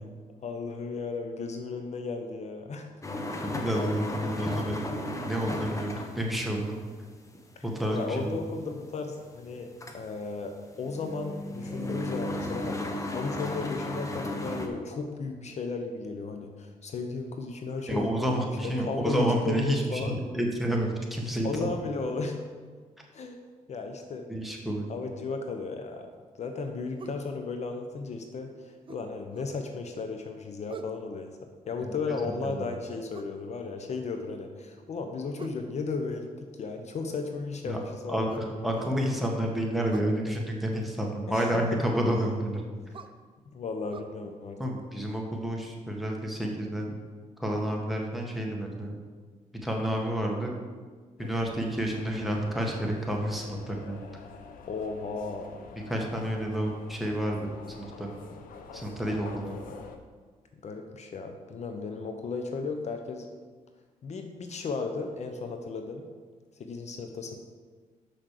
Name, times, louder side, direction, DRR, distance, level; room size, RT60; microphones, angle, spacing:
voice 1, 0.4-2.9 7.6-12.8 13.1-20.2 21.4-22.4 23.1-23.4 23.7-24.3 24.9-26.1 26.4-31.3 31.7-36.3 36.6-39.0 41.3-41.8 43.5-44.6 54.7-55.5 60.6-63.3 64.0-66.0 66.6-67.4, left 4 dB, 50° left, 5 dB, 0.8 m, -35 dB
sound 1, 3.0-14.7, left 1 dB, 20° left, 1.1 m, -35 dB
voice 2, 3.4-4.8 5.2-6.7 7.6-8.4 17.9-21.7 24.3-24.9 31.8-31.9 32.2-32.7 37.6-37.8 38.1-42.6 44.6-46.9 47.4-49.0 49.6-50.5 51.2-54.0 55.9-57.5 57.8-58.1 58.7-59.5, right 1 dB, ahead, -1 dB, 1.5 m, -30 dB
sound 2, 27.0-27.2 28.9-29.6 30.7-31.0 33.1-33.4 35.4-35.7 38.3-39.0 39.9-40.2 42.0-42.3 42.9-43.2 43.9-44.0, right 5 dB, 40° right, 0.6 m, -44 dB
sound 3, 51.2-60.0, left 5 dB, 85° left, 0.8 m, -47 dB
6.1 x 6.0 x 6.6 m, 1.5 s
cardioid pair, 95°, 14 cm